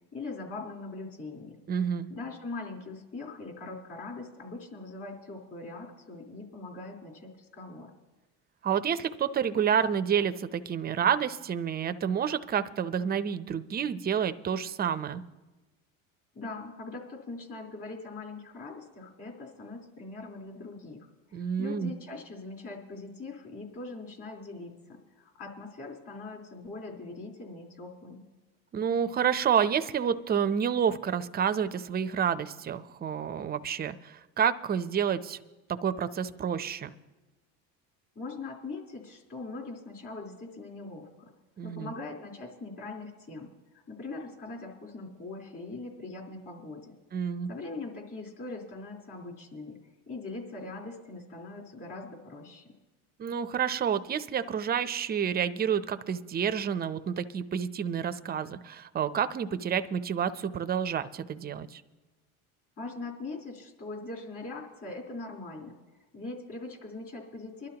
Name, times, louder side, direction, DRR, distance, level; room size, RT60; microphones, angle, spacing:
voice 1, 0.1-1.6 2.1-7.9 16.3-28.2 38.2-41.3 41.6-43.5 43.9-47.0 47.5-49.8 50.1-52.8 62.8-65.8 66.1-67.7, left 3 dB, 35° left, -2 dB, 3.8 m, -41 dB
voice 2, 1.7-2.1 8.6-15.2 21.3-21.9 28.7-35.4 35.7-36.9 41.6-41.9 47.1-47.5 53.2-61.8, right 8 dB, 25° right, 11 dB, 0.5 m, -29 dB
24.0 x 12.0 x 2.9 m, 1.2 s
supercardioid pair, 110°, 39 cm